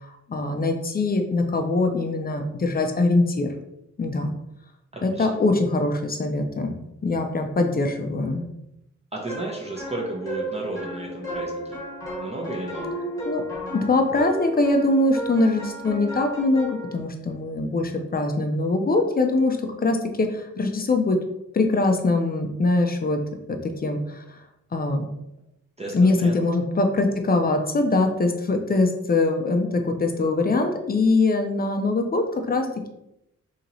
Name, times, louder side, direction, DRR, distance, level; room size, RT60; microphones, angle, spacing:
voice 1, 0.0-3.5 4.0-4.3 5.0-6.7 7.0-8.5 13.3-13.4 13.7-21.2 21.5-23.2 23.5-24.2 24.7-25.1 25.9-32.7, left 2 dB, 30° left, 5 dB, 0.5 m, -22 dB
voice 2, 4.9-5.3 9.1-11.8 12.2-12.9 25.8-26.3, right 2 dB, 20° right, -2 dB, 0.7 m, -33 dB
sound 1, 9.3-17.0, equal, 10° left, 1.1 m, -34 dB
2.9 x 2.9 x 3.9 m, 0.85 s
wide cardioid pair, 115°, 29 cm